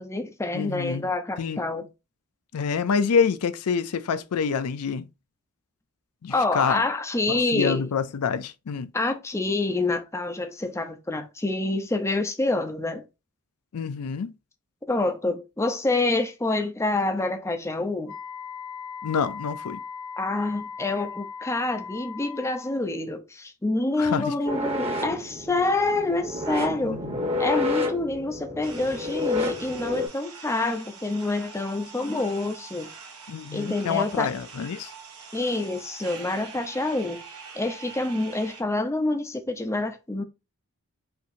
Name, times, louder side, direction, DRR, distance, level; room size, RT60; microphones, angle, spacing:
voice 1, 0.0-1.9 6.3-7.8 8.9-13.0 14.9-18.1 20.2-27.0 27.4-32.9 33.5-34.3 35.3-37.2 37.6-40.2, left 2 dB, 10° left, 0.5 m, -27 dB
voice 2, 0.5-1.1 1.4-1.6 2.5-5.1 6.2-6.8 7.3-8.9 13.7-14.3 19.0-19.8 24.0-24.3 26.8-27.0 33.3-34.9, left 6 dB, 85° left, 0.4 m, -27 dB
Wind instrument woodwind instrument, 18.1-22.9, left 6 dB, 65° left, 1.1 m, -38 dB
sound 1, 24.5-30.1, left 2 dB, 25° right, 1.0 m, -30 dB
sound 2, 28.6-38.6, right 5 dB, 80° right, 1.2 m, -44 dB
5.7 x 2.8 x 2.6 m
head